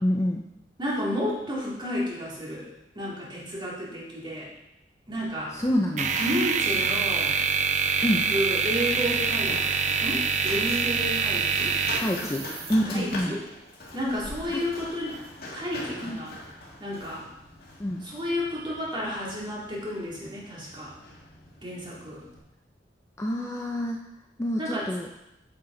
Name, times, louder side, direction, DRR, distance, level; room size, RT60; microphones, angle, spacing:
voice 1, 0.0-0.4 5.5-6.1 8.0-8.3 12.0-13.4 16.0-16.2 17.8-18.0 23.2-24.0 24.4-25.1, equal, 15° left, 1 dB, 0.5 m, -27 dB
voice 2, 0.8-2.7 2.9-4.5 5.1-5.6 6.2-7.4 8.3-9.6 10.0-11.8 12.1-12.3 12.9-13.4 13.9-15.2 15.5-16.4 16.8-17.3 18.0-20.9 21.6-22.2 24.6-24.9, equal, 25° right, -5 dB, 2.3 m, -31 dB
Run, 5.1-22.4, left 2 dB, 60° left, 1.9 m, -42 dB
sound 1, 6.0-12.7, right 5 dB, 40° right, 0.5 m, -26 dB
8.7 x 5.9 x 3.8 m, 0.88 s
head